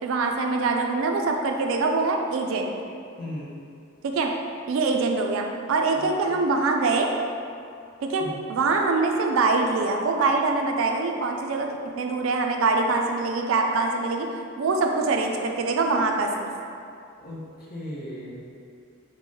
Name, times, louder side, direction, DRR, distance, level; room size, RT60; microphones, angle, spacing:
voice 1, 0.0-2.7 4.0-4.3 4.7-7.1 8.0-14.3 14.6-16.5, right 3 dB, 75° right, 3 dB, 0.3 m, -24 dB
voice 2, 3.2-3.5 6.0-6.4 8.2-8.5 17.2-18.4, equal, 45° left, -6 dB, 0.7 m, -37 dB
3.8 x 2.1 x 3.7 m, 2.4 s
head